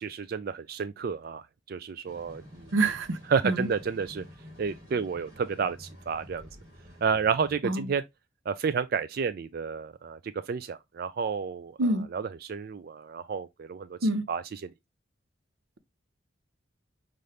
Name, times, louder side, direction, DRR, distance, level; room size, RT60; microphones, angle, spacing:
voice 1, 0.0-1.4 1.7-2.7 3.3-4.2 4.6-6.5 7.0-8.0 8.5-10.2 10.5-11.7 12.1-14.7, right 6 dB, 50° right, 0.3 m, -31 dB
sound 1, 2.0-7.6, left 1 dB, 25° right, 2.9 m, -49 dB
voice 2, 2.7-3.2 3.4-3.7 7.6-7.9 11.8-12.1 14.0-14.2, right 2 dB, 85° right, 0.6 m, -26 dB
5.5 x 2.6 x 3.2 m
head